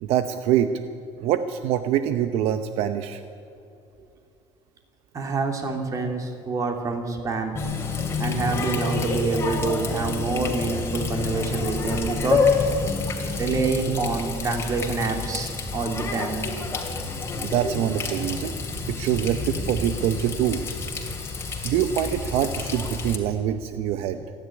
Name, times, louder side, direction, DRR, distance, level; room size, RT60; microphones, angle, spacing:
voice 1, 0.0-0.7 1.2-3.2 17.4-18.6 18.9-20.6 21.6-24.2, right 10 dB, 65° right, 9 dB, 0.9 m, -24 dB
voice 2, 5.1-7.6 8.2-12.4 13.4-16.4, right 3 dB, 30° right, 4 dB, 2.9 m, -27 dB
Water tap faucet, 7.6-23.2, left 4 dB, 25° left, 2.7 m, -28 dB
27.5 x 10.5 x 9.8 m, 2.6 s
cardioid pair, 150°, 11 cm